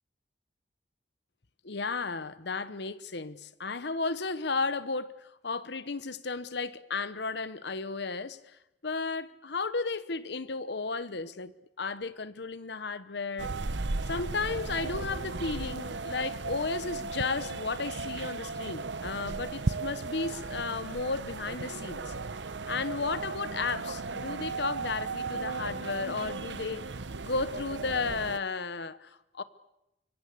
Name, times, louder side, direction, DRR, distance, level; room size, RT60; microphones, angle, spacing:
voice 1, 1.6-8.4 8.8-13.5 14.1-22.1 22.7-26.8 27.2-29.4, left 4 dB, 65° left, 1.1 m, -34 dB
sound 1, 13.4-28.4, right 3 dB, 80° right, 1.0 m, -36 dB
25.5 x 22.5 x 8.4 m
head